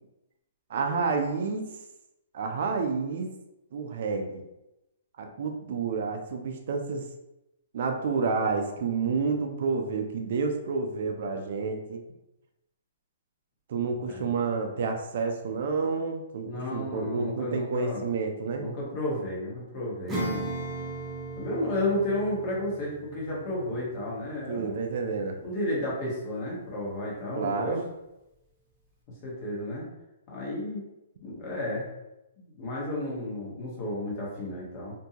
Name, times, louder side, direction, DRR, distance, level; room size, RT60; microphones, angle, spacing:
voice 1, 0.7-1.7 2.3-3.3 3.7-4.4 5.2-7.0 7.7-12.0 13.7-18.7 24.5-25.4 27.3-27.9, right 4 dB, 55° right, 4 dB, 0.4 m, -29 dB
voice 2, 16.4-18.1 18.6-20.5 21.4-24.8 25.4-27.8 29.2-29.9 30.3-30.8 31.2-31.9 32.4-34.9, left 1 dB, 35° left, -4 dB, 1.0 m, -32 dB
Acoustic guitar / Strum, 20.1-26.1, right 2 dB, 5° right, 0.6 m, -38 dB
2.6 x 2.2 x 2.8 m, 0.93 s
hypercardioid pair, 155°, 0 cm